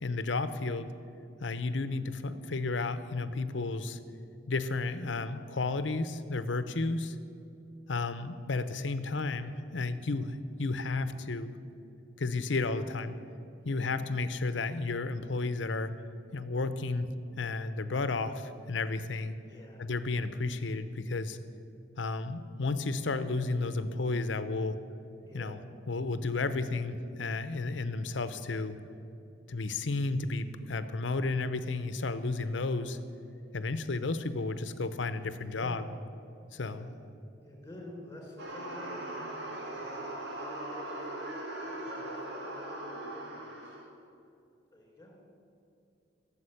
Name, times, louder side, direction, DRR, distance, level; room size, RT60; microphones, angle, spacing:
voice 1, 0.0-0.9 1.4-4.0 4.5-7.1 7.9-11.5 12.2-13.1 13.6-15.9 16.3-17.1 17.4-19.3 19.8-21.4 22.0-24.8 25.3-25.6 25.9-28.8 29.5-33.0 33.5-35.8 36.5-36.9, left 3 dB, 80° left, 11 dB, 0.8 m, -32 dB
voice 2, 19.5-19.8 25.2-25.6 35.5-35.8 36.7-37.0 37.4-43.8 44.7-45.1, left 1 dB, 15° left, -1 dB, 3.8 m, -50 dB
sound 1, 38.4-43.9, right 1 dB, 65° right, 2.0 m, -39 dB
14.5 x 7.3 x 10.0 m, 2.6 s
head